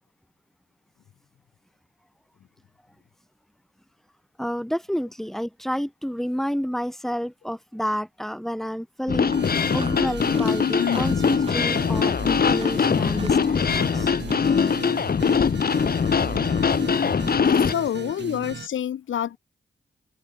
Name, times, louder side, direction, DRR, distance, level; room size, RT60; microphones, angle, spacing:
voice 1, 4.4-9.3 9.7-14.1, equal, ahead, 5.6 m, -30 dB
sound 1, 9.1-17.7, left 6 dB, 50° left, 1.2 m, -22 dB
sound 2, 9.2-14.7, right 3 dB, 30° right, 7.6 m, -44 dB
sound 3, 9.3-18.7, right 6 dB, 60° right, 3.3 m, -37 dB
voice 2, 10.6-11.0 12.2-12.3 17.4-19.4, left 10 dB, 85° left, 1.5 m, -28 dB
cardioid pair, 65°, 20 cm